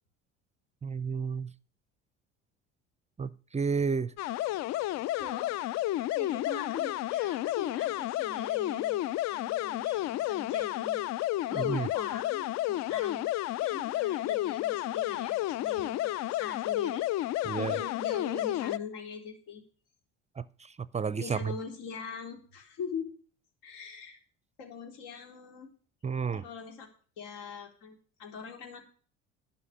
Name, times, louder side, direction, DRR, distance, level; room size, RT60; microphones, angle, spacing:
voice 1, 0.8-1.5 3.2-4.1 11.5-11.9 17.4-17.8 20.4-21.5 26.0-26.4, right 5 dB, 20° right, 0.6 m, -31 dB
sound 1, 4.2-18.8, left 15 dB, 50° left, 0.5 m, -31 dB
voice 2, 5.2-5.5 6.2-11.1 11.5-13.3 13.6-17.0 17.6-19.6 21.2-23.1 23.6-24.2 24.6-25.7 26.3-26.9 27.2-28.8, left 5 dB, 70° left, 3.7 m, -42 dB
11.0 x 5.8 x 8.8 m
hypercardioid pair, 65°, 36 cm